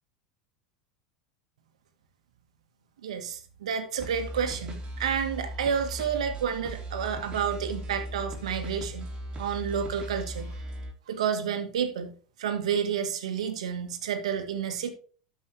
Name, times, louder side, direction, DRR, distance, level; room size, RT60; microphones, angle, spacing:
voice 1, 3.0-9.0 9.4-10.5 11.1-12.1 12.4-14.9, right 7 dB, 80° right, 7 dB, 1.6 m, -30 dB
sound 1, 4.0-10.9, right 1 dB, 30° right, 3.4 m, -38 dB
13.0 x 5.5 x 3.4 m, 0.41 s
hypercardioid pair, 95°, 3 cm